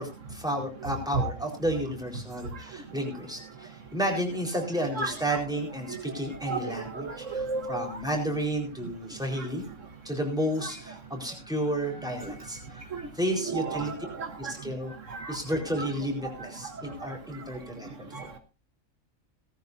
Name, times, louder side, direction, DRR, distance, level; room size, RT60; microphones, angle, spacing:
voice 1, 0.0-7.1 7.3-7.4 7.7-9.6 10.0-12.6 13.2-13.9 14.4-14.9 15.3-18.3, equal, 5° right, 1 dB, 4.3 m, -31 dB
voice 2, 4.9-5.4 5.9-6.0 6.5-7.9 10.6-10.7 12.1-12.2 12.9-13.0 13.3-14.5 15.1-15.4 15.8-15.9 18.1-18.4, right 4 dB, 65° right, 7 dB, 1.5 m, -33 dB
18.0 x 14.5 x 2.7 m, 0.29 s
omnidirectional pair, 1.4 m